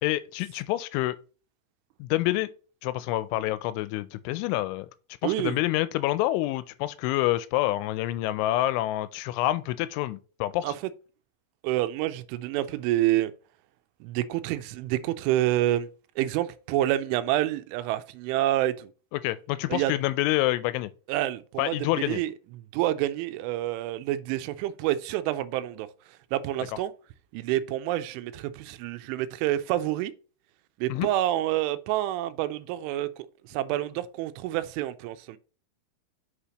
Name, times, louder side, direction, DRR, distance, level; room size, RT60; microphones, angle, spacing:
voice 1, 0.0-1.2 2.0-2.5 2.8-4.9 5.2-10.7 19.1-20.9 21.6-22.2 30.9-31.1, left 16 dB, 85° left, 2.9 m, -27 dB
voice 2, 5.2-5.6 10.6-10.7 11.6-13.3 14.0-15.9 16.2-18.9 19.7-19.9 21.1-22.3 22.7-25.9 26.3-26.9 27.3-30.1 30.8-33.1 33.5-35.4, right 14 dB, 85° right, 3.0 m, -28 dB
8.2 x 5.6 x 2.9 m
omnidirectional pair, 5.5 m